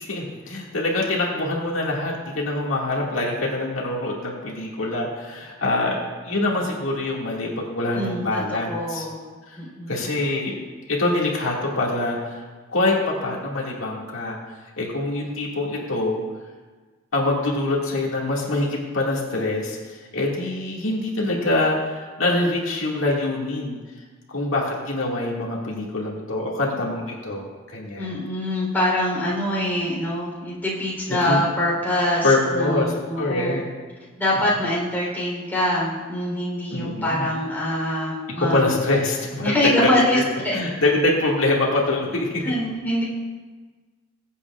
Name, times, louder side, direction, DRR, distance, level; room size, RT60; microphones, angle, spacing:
voice 1, 0.0-9.0 9.5-9.6 9.9-10.6 10.9-12.4 12.7-13.0 13.2-14.4 14.8-16.2 17.1-23.8 24.3-28.2 31.1-31.4 32.2-33.7 36.7-37.3 38.4-39.9 40.5-42.4, left 2 dB, 70° left, -3 dB, 2.0 m, -24 dB
voice 2, 7.9-9.2 9.6-10.0 28.0-33.6 34.2-38.7 39.4-40.2 40.4-40.6 42.4-43.0, left 1 dB, 10° left, -5 dB, 3.6 m, -24 dB
22.0 x 8.3 x 2.4 m, 1.4 s
head